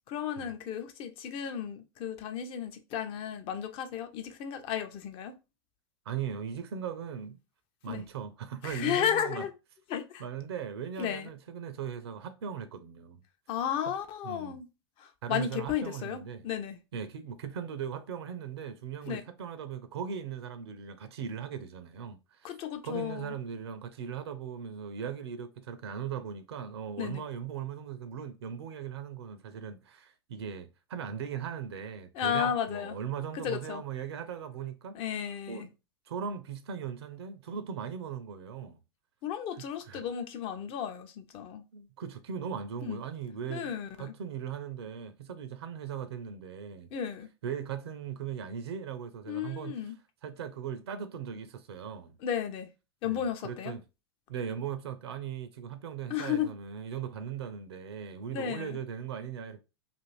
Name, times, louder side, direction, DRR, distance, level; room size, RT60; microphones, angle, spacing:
voice 1, 0.0-5.4 7.9-8.0 8.6-9.5 9.9-10.2 11.0-11.3 13.5-14.6 15.0-16.8 19.1-19.2 22.4-23.3 27.0-27.2 32.1-33.0 33.3-33.8 34.9-35.7 39.2-41.6 42.8-43.0 43.5-44.1 46.9-47.3 49.3-50.0 52.2-52.7 53.0-53.7 56.1-56.5 58.3-58.8, left 9 dB, 40° left, 0.6 m, -33 dB
voice 2, 6.1-7.4 7.8-9.4 10.2-13.2 13.9-14.0 14.2-14.6 15.2-16.5 16.9-22.5 22.8-35.0 35.5-35.7 36.1-38.8 39.9-40.0 41.7-43.7 44.0-46.9 47.4-49.8 50.2-52.2 53.0-53.8 54.3-59.6, right 8 dB, 70° right, 0.5 m, -39 dB
2.5 x 2.4 x 3.1 m
hypercardioid pair, 95°, 14 cm